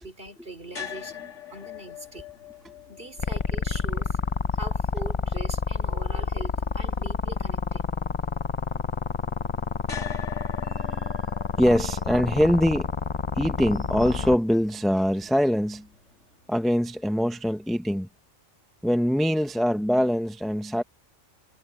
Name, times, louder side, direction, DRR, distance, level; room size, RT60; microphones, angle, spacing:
voice 1, 0.0-2.3 2.9-4.2 4.5-7.9, right 2 dB, 40° right, 4.5 m, -41 dB
sound 1, 0.7-16.9, left 8 dB, 65° left, 3.6 m, -46 dB
sound 2, 3.2-14.4, left 5 dB, 35° left, 0.5 m, -28 dB
voice 2, 10.6-12.9 13.4-15.9 16.5-18.1 18.8-20.8, equal, ahead, 0.9 m, -24 dB
omnidirectional pair, 1.4 m